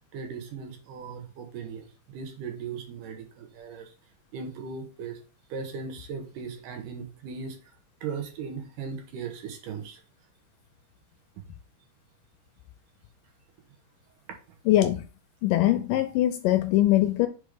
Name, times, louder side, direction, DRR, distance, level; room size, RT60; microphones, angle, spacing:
voice 1, 0.1-3.9 4.3-5.2 5.5-7.8 8.0-10.0, right 5 dB, 70° right, 2.5 m, -38 dB
voice 2, 14.7-15.0 15.4-17.3, left 14 dB, 80° left, 2.0 m, -22 dB
5.3 x 4.9 x 4.9 m
omnidirectional pair, 4.2 m